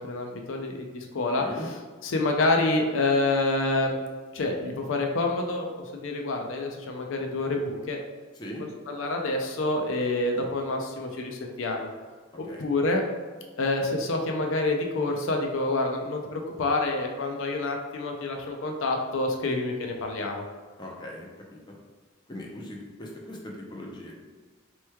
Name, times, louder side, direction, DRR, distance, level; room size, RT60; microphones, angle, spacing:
voice 1, 0.0-1.7 2.0-4.0 4.3-5.7 6.0-8.0 8.6-11.9 12.4-13.0 13.6-20.4, left 2 dB, 75° left, 2 dB, 0.5 m, -27 dB
voice 2, 1.4-1.7 8.4-8.7 12.4-12.6 20.8-21.7 22.3-24.2, equal, 20° left, -2 dB, 0.5 m, -40 dB
4.4 x 3.0 x 2.2 m, 1.4 s
head